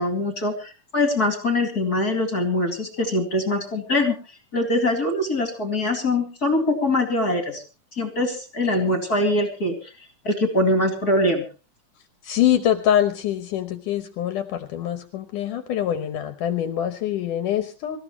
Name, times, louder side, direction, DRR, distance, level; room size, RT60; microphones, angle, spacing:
voice 1, 0.0-4.2 4.5-7.6 7.9-9.9 10.2-11.4, left 1 dB, 30° left, 5 dB, 2.6 m, -23 dB
voice 2, 12.2-18.0, left 11 dB, 70° left, 9 dB, 2.4 m, -24 dB
25.0 x 14.5 x 3.1 m, 0.34 s
omnidirectional pair, 4.0 m